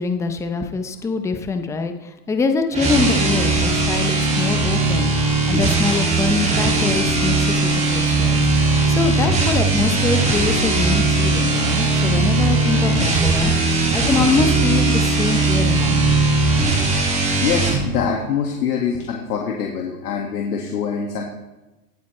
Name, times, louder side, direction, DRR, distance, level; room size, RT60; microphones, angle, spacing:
voice 1, 0.0-5.1 5.5-16.3, left 4 dB, 5° left, 6 dB, 0.6 m, -24 dB
sound 1, 2.7-17.8, right 3 dB, 15° right, 2.5 m, -19 dB
voice 2, 17.1-21.2, left 6 dB, 75° left, 0 dB, 2.0 m, -24 dB
17.5 x 8.8 x 3.2 m, 1.0 s
hypercardioid pair, 125°, 47 cm